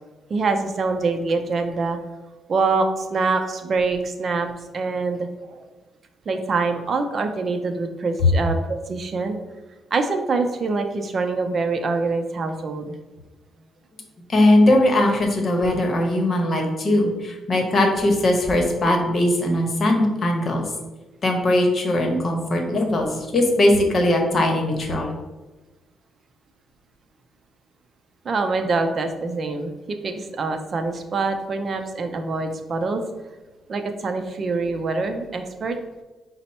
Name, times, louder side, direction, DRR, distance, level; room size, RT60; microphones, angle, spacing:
voice 1, 0.3-2.0 2.5-5.7 6.3-9.4 9.9-13.0 28.2-33.0 33.7-35.8, right 3 dB, 45° right, 6 dB, 0.5 m, -25 dB
voice 2, 14.3-20.7 21.2-25.1, left 1 dB, 40° left, 2 dB, 0.9 m, -20 dB
5.2 x 2.0 x 4.2 m, 1.2 s
cardioid pair, 90°, 0 cm